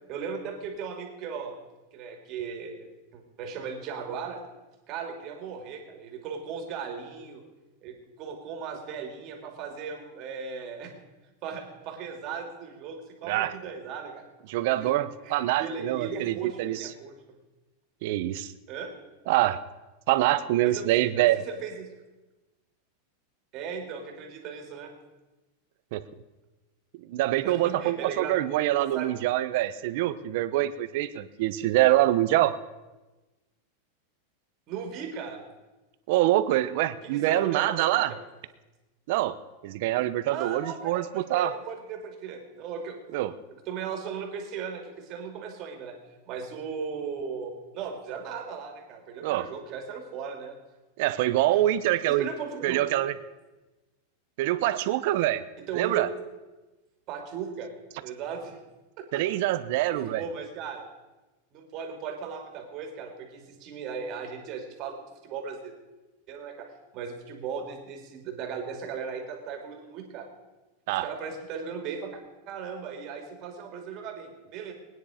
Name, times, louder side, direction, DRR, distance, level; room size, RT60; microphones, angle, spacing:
voice 1, 0.1-1.6 1.9-4.4 4.9-7.4 7.8-10.9 11.4-14.2 14.8-14.9 15.2-17.1 18.7-18.9 20.6-21.9 23.5-24.9 27.4-28.4 28.8-29.2 34.7-35.5 37.0-38.2 40.3-43.0 43.7-46.0 46.3-50.6 51.5-51.6 52.1-52.8 55.7-56.1 57.1-57.7 58.0-58.6 59.0-59.2 59.9-60.8 61.5-65.7 66.3-70.3 70.9-72.2 72.5-74.7, right 6 dB, 35° right, 3 dB, 2.6 m, -37 dB
voice 2, 14.5-16.8 18.0-18.5 19.3-19.6 20.1-21.4 25.9-26.0 27.1-32.5 36.1-38.1 39.1-39.3 39.6-41.5 43.1-43.3 49.2-49.5 51.0-52.3 52.6-53.1 54.4-55.4 55.7-56.1 59.1-60.2 70.9-71.1, right 15 dB, 55° right, 12 dB, 0.8 m, -25 dB
20.5 x 9.7 x 5.1 m, 1.1 s
supercardioid pair, 155°, 0 cm